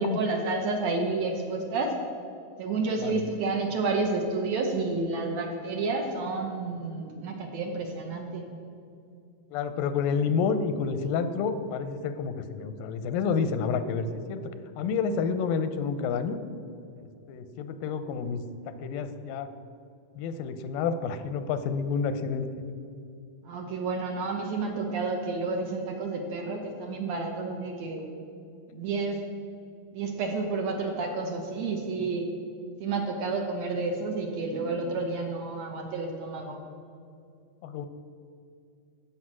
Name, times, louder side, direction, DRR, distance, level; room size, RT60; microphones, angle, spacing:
voice 1, 0.0-1.9 2.6-8.5 23.4-28.1 28.7-29.2 29.9-32.3 32.8-36.6, right 3 dB, 65° right, 2 dB, 2.0 m, -30 dB
voice 2, 9.5-14.4 14.8-16.4 17.0-19.5 20.2-22.5 32.0-32.1 37.6-37.9, left 5 dB, 90° left, 10 dB, 2.4 m, -29 dB
12.5 x 8.4 x 6.1 m, 2.4 s
omnidirectional pair, 4.0 m